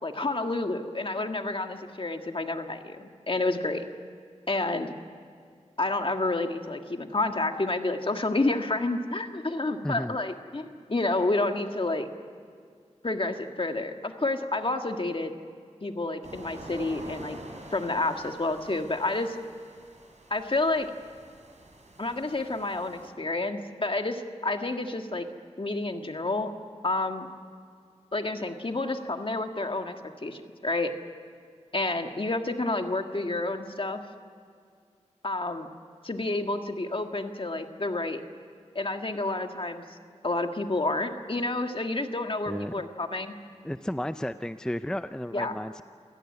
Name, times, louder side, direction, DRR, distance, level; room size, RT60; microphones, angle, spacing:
voice 1, 0.0-3.8 4.5-4.9 5.8-12.1 13.0-15.3 15.8-17.4 17.7-19.4 20.3-20.9 22.0-25.3 25.6-26.5 26.8-27.3 28.1-30.9 31.7-34.0 35.2-35.7 36.0-38.2 38.7-39.8 40.2-43.3 45.3-45.5, left 2 dB, 45° left, 5 dB, 1.8 m, -29 dB
voice 2, 9.8-10.2 42.5-42.8 43.6-45.8, equal, 5° left, 11 dB, 0.5 m, -33 dB
sound 1, 16.2-23.1, right 2 dB, 75° right, 4.5 m, -47 dB
28.0 x 17.5 x 9.8 m, 2.2 s
wide cardioid pair, 65°, 12 cm